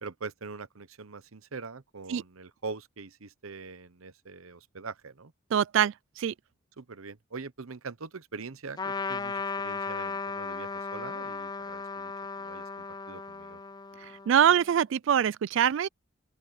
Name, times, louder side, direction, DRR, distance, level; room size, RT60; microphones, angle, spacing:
voice 1, 0.0-5.3 6.8-13.6, right 4 dB, 90° right, 1.0 m, -43 dB
voice 2, 5.5-6.3 14.0-15.9, right 9 dB, 70° right, 0.3 m, -24 dB
Trumpet, 8.8-14.6, left 4 dB, 20° left, 0.3 m, -36 dB
open air
head